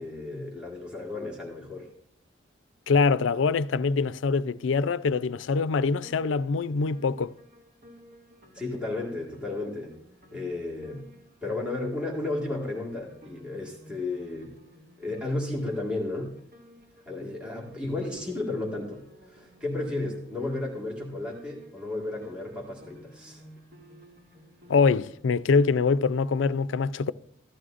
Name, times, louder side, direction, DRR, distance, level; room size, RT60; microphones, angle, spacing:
voice 1, 0.0-1.9 8.5-10.0 10.3-11.0 11.4-14.5 15.0-16.4 17.1-23.4, left 2 dB, 5° right, 1.8 m, -33 dB
voice 2, 2.9-7.3 24.7-27.1, left 4 dB, 85° left, 0.4 m, -24 dB
Piano, 6.0-25.2, equal, 50° right, 2.6 m, -54 dB
15.5 x 12.5 x 2.5 m
head